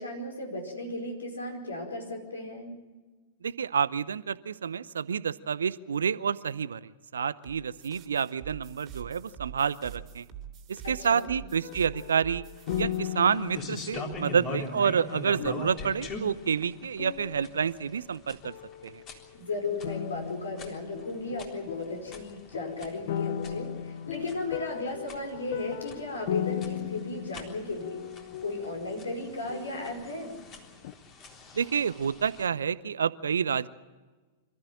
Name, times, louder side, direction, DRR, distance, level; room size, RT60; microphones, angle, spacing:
voice 1, 0.0-2.7 10.8-11.3 19.3-28.0 28.4-30.3, left 2 dB, 75° left, 2 dB, 5.0 m, -35 dB
voice 2, 3.4-10.2 10.7-12.4 12.8-18.5 18.8-19.0 31.5-33.7, right 7 dB, 70° right, 18 dB, 0.7 m, -29 dB
sound 1, 7.4-13.0, right 9 dB, 30° right, 2.6 m, -45 dB
sound 2, 11.6-18.2 18.4-19.3 19.8-30.5 30.8-30.9, left 11 dB, 50° left, 0.7 m, -38 dB
sound 3, 12.6-32.5, left 2 dB, 35° left, 3.7 m, -44 dB
26.0 x 14.0 x 8.9 m, 1.3 s
figure-of-eight pair, 95°, 0 cm